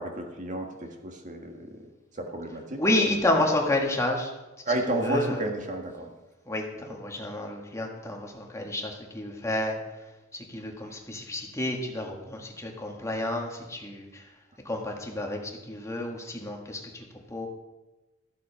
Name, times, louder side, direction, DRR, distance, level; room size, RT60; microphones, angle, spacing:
voice 1, 0.0-1.9 2.1-2.8 4.6-6.1 10.8-10.9, right 1 dB, 40° right, 3 dB, 1.7 m, -31 dB
voice 2, 2.8-4.3 5.0-5.4 6.5-9.7 10.3-14.2 14.6-17.0 17.3-17.5, left 1 dB, 15° left, 1 dB, 1.6 m, -30 dB
14.0 x 7.7 x 5.7 m, 1.1 s
head